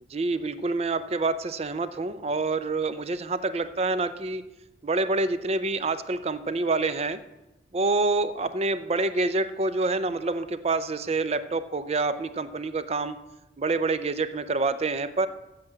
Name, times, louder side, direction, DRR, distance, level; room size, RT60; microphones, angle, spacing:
voice 1, 0.1-4.4 4.8-7.2 7.7-13.2 13.6-15.3, right 3 dB, 35° right, 12 dB, 0.5 m, -27 dB
7.7 x 7.3 x 7.6 m, 0.96 s
head